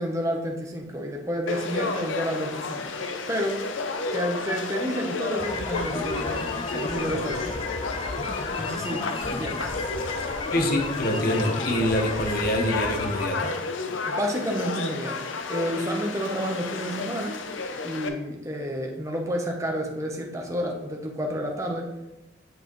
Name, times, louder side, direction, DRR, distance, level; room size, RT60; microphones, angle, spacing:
voice 1, 0.0-2.9 3.3-3.6 4.1-6.4 6.7-7.5 8.6-9.7 14.1-15.2 15.5-17.3 17.8-21.9, equal, 15° right, 0 dB, 0.9 m, -30 dB
Conversation / Crowd, 1.5-18.1, left 3 dB, 90° left, 0.7 m, -32 dB
sound 1, 5.4-13.3, left 3 dB, 25° left, 0.4 m, -33 dB
voice 2, 10.5-13.6, equal, 50° left, 4 dB, 1.0 m, -25 dB
7.9 x 4.8 x 3.1 m, 0.95 s
head